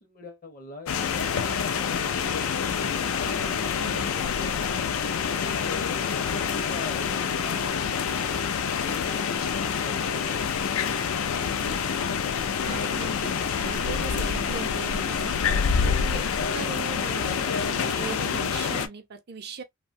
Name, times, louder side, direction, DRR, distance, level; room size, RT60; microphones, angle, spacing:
voice 1, 0.0-3.6 6.0-8.1 8.7-9.4 9.8-10.6, left 2 dB, 40° left, 0.7 m, -45 dB
sound 1, 0.9-18.9, left 6 dB, 70° left, 0.4 m, -27 dB
voice 2, 3.8-4.5 12.6-15.4 15.8-16.3 16.5-19.6, right 5 dB, 50° right, 0.6 m, -39 dB
2.7 x 2.2 x 2.5 m
head